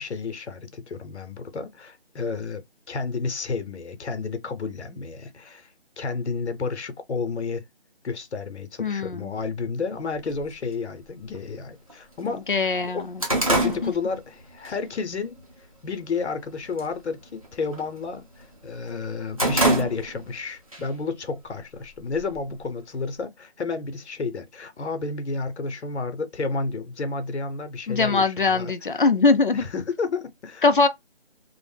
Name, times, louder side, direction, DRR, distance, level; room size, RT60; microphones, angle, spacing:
voice 1, 0.0-7.6 8.0-12.4 12.8-13.1 13.5-15.4 15.8-29.0 29.5-30.6, left 4 dB, 85° left, 0.7 m, -31 dB
voice 2, 8.8-9.3 12.5-13.2 13.6-13.9 27.9-29.7 30.6-30.9, left 4 dB, 50° left, 0.4 m, -21 dB
sound 1, 10.3-10.4 11.3-11.4 11.9-12.0 12.3-14.7 15.1-15.4 15.9-16.4 16.7-17.0 17.3-18.5 18.9-20.4 20.7-20.8 21.7-22.6, right 2 dB, 30° right, 0.6 m, -26 dB
2.5 x 2.0 x 3.2 m
figure-of-eight pair, 175°, 33 cm